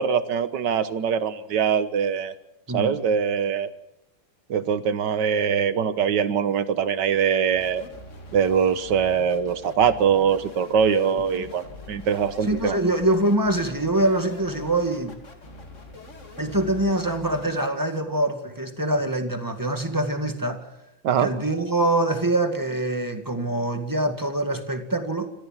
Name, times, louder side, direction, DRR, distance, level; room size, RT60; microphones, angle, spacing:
voice 1, 0.0-2.3 2.7-3.7 4.5-7.8 8.3-12.8 21.0-21.3, right 7 dB, 55° right, 1.6 m, -22 dB
voice 2, 2.7-3.0 11.4-11.5 12.5-15.2 16.4-20.7 21.2-25.3, right 1 dB, 10° right, 1.7 m, -24 dB
sound 1, 7.5-17.7, left 1 dB, 35° left, 2.8 m, -44 dB
26.5 x 15.5 x 7.5 m
omnidirectional pair, 2.4 m